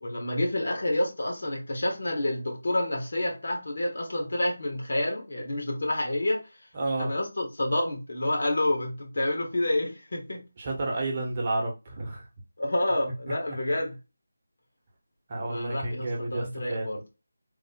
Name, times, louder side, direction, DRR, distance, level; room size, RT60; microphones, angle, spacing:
voice 1, 0.0-6.5 7.0-10.4 12.6-14.0 15.5-17.0, left 1 dB, 60° left, 1.1 m, -28 dB
voice 2, 6.7-7.1 10.6-12.2 15.3-16.9, right 2 dB, 30° right, 0.9 m, -31 dB
3.4 x 2.0 x 3.5 m
figure-of-eight pair, 160°, 0 cm